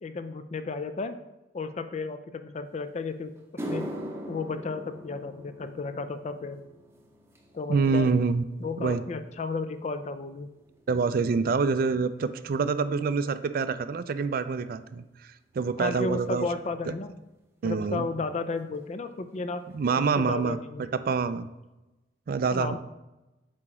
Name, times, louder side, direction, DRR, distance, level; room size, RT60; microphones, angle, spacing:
voice 1, 0.0-1.2 1.5-3.3 3.7-3.9 4.3-6.6 7.5-8.1 8.6-10.5 15.8-17.1 17.6-19.6 20.0-20.9 22.5-22.8, left 3 dB, 35° left, 9 dB, 0.4 m, -33 dB
sound 1, 2.8-2.9 3.4-11.9 12.2-12.6 13.4-13.5 16.2-16.3 17.9-18.0 18.2-18.5 18.7-19.3 19.7-19.8 20.3-20.4, right 1 dB, 15° right, 0.7 m, -43 dB
voice 2, 7.7-8.4 8.8-9.0 10.9-16.5 17.6-18.1 19.7-21.5 22.3-22.8, right 4 dB, 50° right, 12 dB, 0.3 m, -26 dB
8.4 x 3.0 x 4.8 m, 1.0 s
head